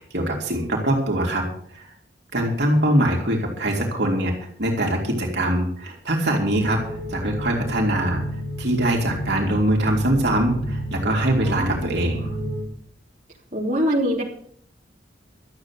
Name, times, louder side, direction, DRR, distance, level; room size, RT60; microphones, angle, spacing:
voice 1, 0.0-1.4 1.7-1.9 2.3-4.3 4.6-6.8 7.1-8.2 8.6-12.3, right 1 dB, 65° right, 0 dB, 3.4 m, -22 dB
sound 1, 6.5-12.6, equal, 50° left, 5.8 m, -31 dB
voice 2, 11.5-11.8 13.5-14.2, equal, 40° right, -3 dB, 3.5 m, -23 dB
13.0 x 8.2 x 8.3 m, 0.63 s
head